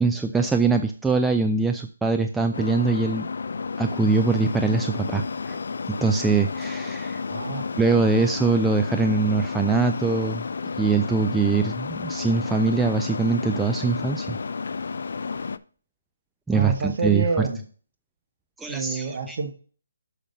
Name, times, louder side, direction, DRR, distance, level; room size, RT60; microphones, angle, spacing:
voice 1, 0.0-3.3 3.8-5.6 5.9-7.2 7.8-10.5 10.8-14.4 16.5-17.5 18.6-19.4, right 4 dB, 5° right, 4 dB, 0.4 m, -23 dB
sound 1, 2.5-15.6, left 5 dB, 65° left, 0.5 m, -31 dB
voice 2, 7.3-7.7 16.5-17.6 18.7-19.5, right 4 dB, 45° right, 4 dB, 1.7 m, -28 dB
6.6 x 5.3 x 5.4 m, 0.41 s
hypercardioid pair, 160°, 0 cm